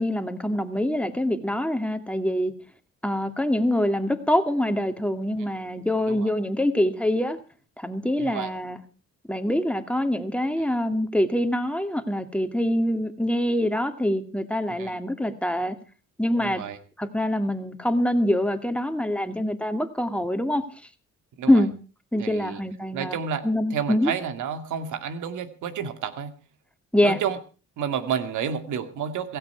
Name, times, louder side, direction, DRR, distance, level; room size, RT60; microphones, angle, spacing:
voice 1, 0.0-2.5 3.0-7.4 7.8-8.8 9.3-15.8 16.2-16.6 17.0-20.6 21.5-21.7 22.1-23.2 23.4-24.1 26.9-27.2, left 1 dB, 5° left, 8 dB, 2.3 m, -24 dB
voice 2, 8.2-8.5 14.8-15.0 16.4-16.8 21.4-21.6 22.2-22.6 22.9-26.3 27.0-27.4 27.8-29.4, right 7 dB, 80° right, 10 dB, 2.3 m, -30 dB
16.5 x 16.0 x 4.6 m, 0.37 s
cardioid pair, 90°, 30 cm